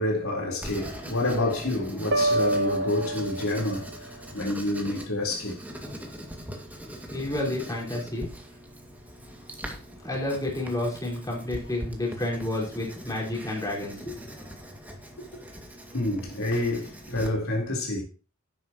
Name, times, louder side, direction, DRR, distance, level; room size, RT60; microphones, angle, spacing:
voice 1, 0.0-5.6 15.2-15.4 15.9-18.0, left 1 dB, 80° left, 4.1 m, -28 dB
Writing, 0.6-17.3, equal, 10° right, 2.3 m, -41 dB
sound 1, 2.1-4.0, right 1 dB, 60° right, 1.4 m, -27 dB
voice 2, 7.1-8.3 10.0-14.2, left 1 dB, 15° left, 4.9 m, -30 dB
12.5 x 10.5 x 3.1 m
head